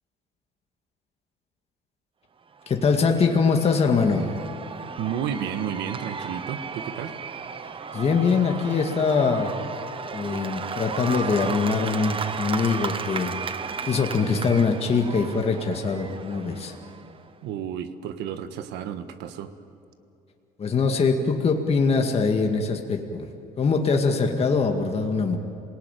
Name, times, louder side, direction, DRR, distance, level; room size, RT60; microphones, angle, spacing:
Cheering / Applause / Crowd, 2.6-17.3, right 5 dB, 30° right, 0.9 m, -35 dB
voice 1, 2.7-4.3 7.9-9.5 10.1-13.4 13.9-16.7 20.6-23.3 23.6-25.4, left 4 dB, 35° left, 3 dB, 2.0 m, -23 dB
voice 2, 5.0-7.1 17.4-19.5, right 8 dB, 85° right, 10 dB, 1.5 m, -31 dB
27.0 x 18.0 x 9.2 m, 2.7 s
cardioid pair, 110°, 17 cm